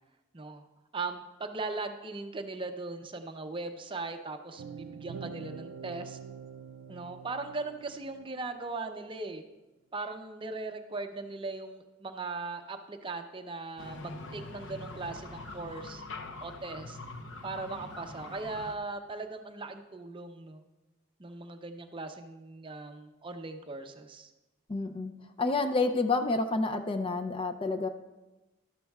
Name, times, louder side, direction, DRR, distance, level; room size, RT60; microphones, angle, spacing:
voice 1, 0.3-0.6 0.9-6.2 6.9-9.4 9.9-16.0 16.4-17.0 17.4-20.6 21.2-24.3, right 3 dB, 25° right, 6 dB, 0.6 m, -39 dB
sound 1, 4.6-8.8, right 6 dB, 75° right, 0.4 m, -45 dB
sound 2, 13.8-18.8, left 2 dB, 65° left, 0.8 m, -43 dB
voice 2, 24.7-25.1 25.4-27.9, left 3 dB, 25° left, 7 dB, 0.5 m, -29 dB
12.0 x 11.5 x 2.3 m, 1.1 s
head